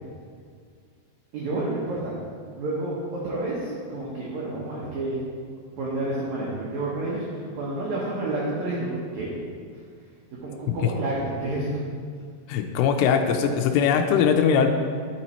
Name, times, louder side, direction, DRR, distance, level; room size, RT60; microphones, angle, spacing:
voice 1, 1.3-2.1 2.6-5.2 5.8-9.3 10.4-11.7, right 2 dB, 65° right, -6 dB, 2.0 m, -29 dB
voice 2, 12.5-14.7, left 7 dB, 90° left, 4 dB, 2.6 m, -21 dB
12.0 x 4.1 x 4.3 m, 2.1 s
omnidirectional pair, 4.5 m